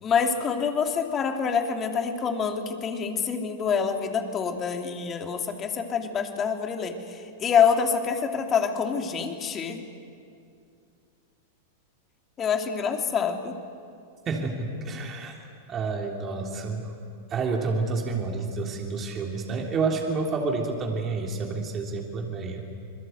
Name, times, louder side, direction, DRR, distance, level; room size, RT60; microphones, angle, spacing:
voice 1, 0.0-9.8 12.4-13.6, left 6 dB, 30° left, 4 dB, 2.8 m, -26 dB
voice 2, 14.2-15.3 15.7-17.0 17.3-22.6, right 4 dB, 30° right, 1 dB, 3.1 m, -29 dB
26.5 x 21.5 x 8.0 m, 2.5 s
hypercardioid pair, 105°, 0 cm